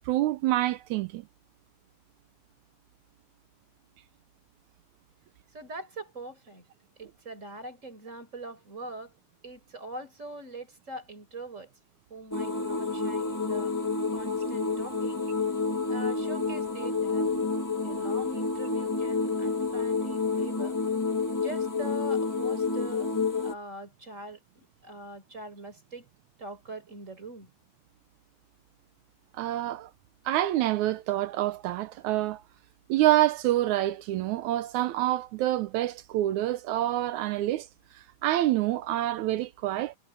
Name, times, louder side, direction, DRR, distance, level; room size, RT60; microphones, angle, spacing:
voice 1, 0.1-1.2 29.4-29.9 30.3-32.4 32.9-37.7 38.2-40.0, right 15 dB, 75° right, 1.9 m, -27 dB
voice 2, 5.5-6.6 7.0-9.1 9.4-11.7 12.1-13.7 14.1-15.3 15.9-17.5 17.8-20.8 21.4-23.1 23.4-26.1 26.4-27.5, right 2 dB, 20° right, 5.3 m, -43 dB
sound 1, 12.3-23.5, left 4 dB, 15° left, 0.8 m, -29 dB
omnidirectional pair, 3.7 m